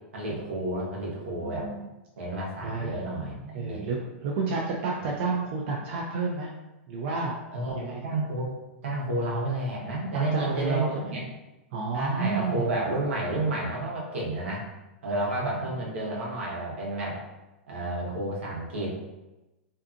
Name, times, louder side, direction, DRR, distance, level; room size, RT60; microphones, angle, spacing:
voice 1, 0.1-1.7 2.2-3.8 7.5-8.4 8.8-11.2 11.9-14.6 15.0-17.2 17.7-19.1, right 2 dB, 85° right, -3 dB, 0.9 m, -31 dB
voice 2, 1.4-1.9 2.6-3.0 3.5-6.5 6.9-7.3 7.7-8.1 10.1-11.2 11.7-12.7 15.4-15.7, right 4 dB, 65° right, -2 dB, 0.4 m, -30 dB
2.6 x 2.4 x 2.5 m, 1.0 s
hypercardioid pair, 125°, 7 cm